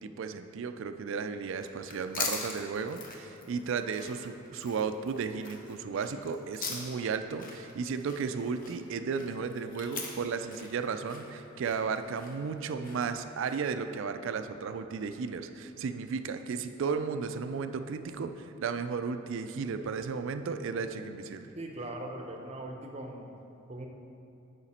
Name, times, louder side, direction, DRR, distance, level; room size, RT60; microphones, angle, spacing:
voice 1, 0.0-21.5, right 5 dB, 65° right, 9 dB, 0.4 m, -34 dB
sound 1, 1.5-13.8, left 4 dB, 40° left, 0.8 m, -42 dB
voice 2, 21.5-23.3 23.7-23.9, right 1 dB, 30° right, 2 dB, 0.7 m, -40 dB
8.8 x 5.1 x 4.2 m, 2.8 s
head